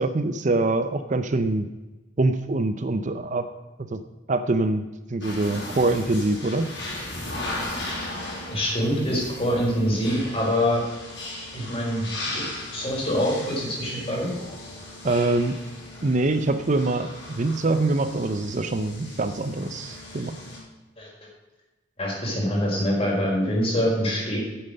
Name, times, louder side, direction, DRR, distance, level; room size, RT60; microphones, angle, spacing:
voice 1, 0.0-1.7 2.2-3.5 3.8-4.0 4.3-6.7 15.0-15.6 16.0-20.4, right 2 dB, 40° right, 9 dB, 0.6 m, -24 dB
sound 1, 5.2-20.6, left 2 dB, 65° left, 4.8 m, -37 dB
voice 2, 8.5-10.8 11.5-12.1 12.3-14.3 21.0-21.1 22.0-24.4, equal, 30° left, -4 dB, 4.9 m, -25 dB
9.6 x 8.8 x 6.6 m, 1.2 s
head